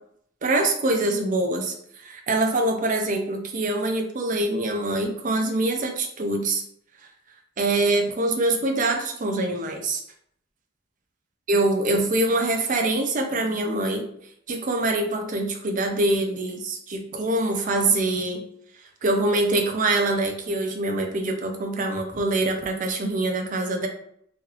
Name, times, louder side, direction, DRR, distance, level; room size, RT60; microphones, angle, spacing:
voice 1, 0.4-1.7 2.0-6.6 7.6-10.0 11.5-14.1 14.5-18.4 19.0-23.9, right 2 dB, 40° right, 3 dB, 0.5 m, -24 dB
3.1 x 3.1 x 2.4 m, 0.68 s
head